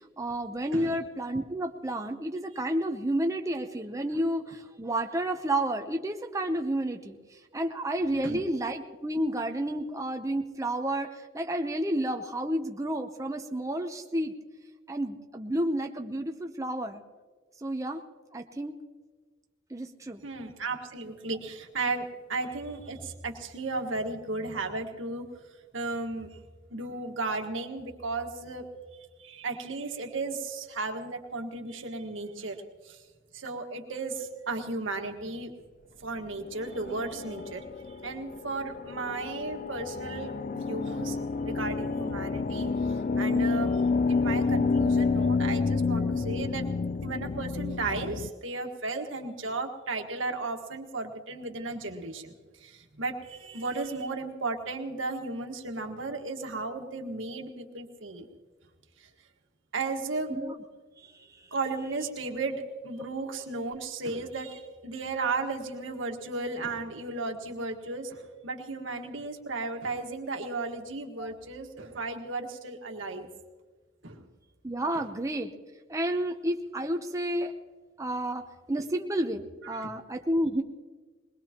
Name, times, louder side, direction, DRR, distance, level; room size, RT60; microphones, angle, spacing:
voice 1, 0.2-7.2 7.5-14.3 14.9-17.0 17.6-18.0 18.3-18.8 19.7-20.2 60.3-60.5 71.2-71.3 74.6-75.5 75.9-77.5 78.0-80.6, right 1 dB, 15° right, 4 dB, 0.7 m, -30 dB
voice 2, 20.2-25.2 25.7-26.3 26.7-28.7 29.2-33.0 33.3-35.5 36.0-37.6 38.0-43.8 44.1-46.7 47.0-58.3 59.0-59.1 59.7-60.3 61.5-73.3 74.0-74.2 74.9-75.1 78.8-78.9 79.6-79.9, right 3 dB, 85° right, 3 dB, 1.6 m, -35 dB
sound 1, 36.4-48.3, left 4 dB, 40° left, 0.4 m, -29 dB
21.5 x 20.5 x 3.0 m, 1.4 s
head